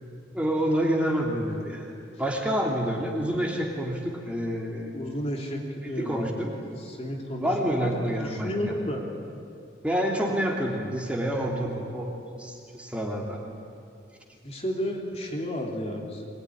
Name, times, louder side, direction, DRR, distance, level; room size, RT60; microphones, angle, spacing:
voice 1, 0.3-1.9 2.2-4.9 5.8-6.5 7.4-8.5 9.8-12.1 12.4-13.4, equal, 5° right, -1 dB, 3.1 m, -28 dB
voice 2, 4.9-6.6 6.8-7.5 7.8-7.9 8.2-9.0 14.4-16.3, equal, 35° left, 0 dB, 2.9 m, -32 dB
23.5 x 21.5 x 10.0 m, 2.4 s
head